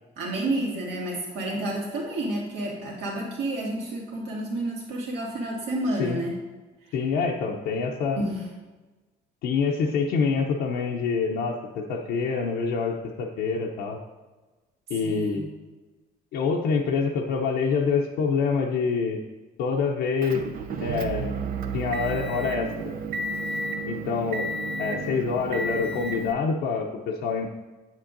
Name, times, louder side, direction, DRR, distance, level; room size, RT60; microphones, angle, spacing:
voice 1, 0.2-6.4 8.2-8.4 15.0-15.5, right 1 dB, 75° right, -3 dB, 2.2 m, -30 dB
voice 2, 6.9-8.2 9.4-14.0 14.9-15.5 16.3-19.2 19.6-20.4 20.8-21.4 21.7-22.7 23.8-24.5 24.8-27.5, left 5 dB, 85° left, -1 dB, 0.7 m, -26 dB
Motor vehicle (road) / Engine, 20.2-26.3, right 3 dB, 60° right, 0.6 m, -31 dB
8.0 x 7.3 x 2.6 m, 1.2 s
cardioid pair, 110°, 17 cm